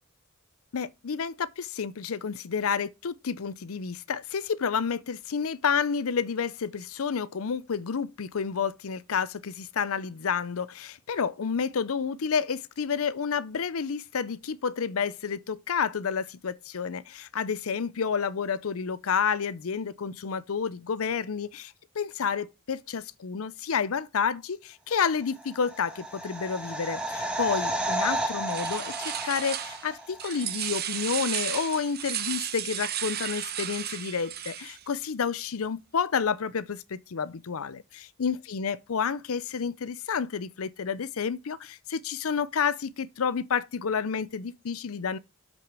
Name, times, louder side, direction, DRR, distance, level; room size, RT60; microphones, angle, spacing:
voice 1, 0.7-37.8 38.2-45.2, left 6 dB, 80° left, 0.6 m, -30 dB
sound 1, 25.4-30.3 30.5-30.6, right 1 dB, 5° right, 1.7 m, -32 dB
sound 2, 28.5-29.9 30.2-34.8, right 10 dB, 45° right, 1.0 m, -34 dB
7.6 x 6.2 x 4.8 m
head